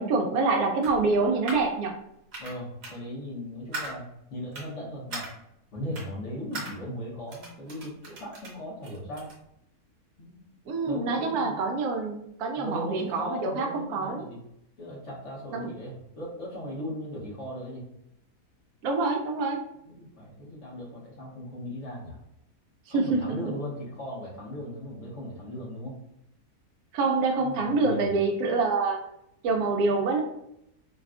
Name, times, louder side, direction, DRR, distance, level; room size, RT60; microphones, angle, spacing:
voice 1, 0.0-1.9 10.7-14.2 15.5-15.7 18.8-19.6 22.9-23.4 26.9-29.0 29.4-30.2, right 3 dB, 75° right, 2 dB, 1.1 m, -26 dB
sound 1, 0.8-1.7 2.3-2.6 2.8-3.0 3.7-3.9 4.5-4.7 5.1-5.3 5.9-6.1 6.5-6.7 7.3-8.5 8.8-9.3, right 2 dB, 50° right, 1.1 m, -38 dB
voice 2, 2.4-5.3 5.7-9.3 10.2-10.5 10.9-11.6 12.6-14.4 14.8-17.8 19.9-22.2 22.9-25.9 27.4-28.1, equal, 55° left, -5 dB, 1.2 m, -38 dB
4.0 x 2.3 x 2.4 m, 0.78 s
omnidirectional pair, 1.6 m